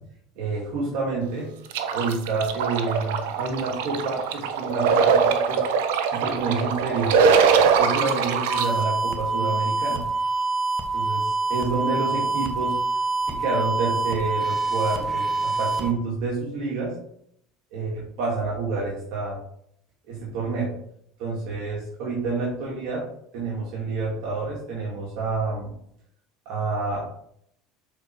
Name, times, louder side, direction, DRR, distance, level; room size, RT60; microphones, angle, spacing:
voice 1, 0.4-1.5 1.9-5.6 6.1-7.2 7.8-10.0 10.9-12.8 13.2-16.9 17.7-19.4 20.1-20.7 21.2-23.1 23.3-25.7 26.5-27.0, right 3 dB, 70° right, -4 dB, 2.3 m, -28 dB
sound 1, 1.7-8.7, right 6 dB, 85° right, 0.8 m, -22 dB
sound 2, 8.5-15.9, right 3 dB, ahead, 1.3 m, -26 dB
6.8 x 4.5 x 4.6 m, 0.69 s
supercardioid pair, 115°, 0 cm